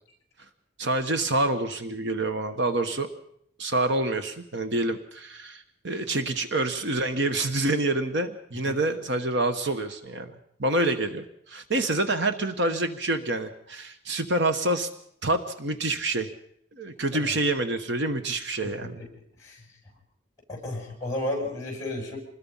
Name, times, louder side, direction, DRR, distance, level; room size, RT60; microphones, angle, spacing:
voice 1, 0.8-3.1 3.6-14.9 15.2-16.3 16.7-19.0, right 2 dB, 55° right, 8 dB, 1.2 m, -27 dB
voice 2, 20.5-22.2, left 1 dB, 15° left, 1 dB, 7.2 m, -33 dB
26.0 x 20.5 x 5.6 m, 0.72 s
head